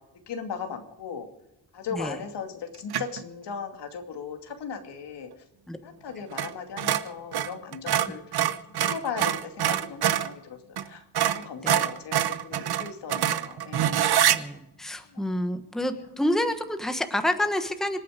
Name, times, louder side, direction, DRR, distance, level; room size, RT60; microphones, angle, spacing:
voice 1, 0.3-1.3 1.7-5.3 5.8-8.4 8.8-10.6 10.8-11.0 11.3-14.1 15.1-15.2, left 6 dB, 85° left, 5 dB, 2.6 m, -37 dB
sound 1, 2.9-3.2 6.3-6.5 6.8-10.3 10.8-10.9 11.1-14.4, right 10 dB, 65° right, 1.0 m, -25 dB
voice 2, 14.3-18.0, left 1 dB, ahead, 8 dB, 1.2 m, -28 dB
26.5 x 9.5 x 5.1 m, 0.91 s
wide cardioid pair, 155°, 40 cm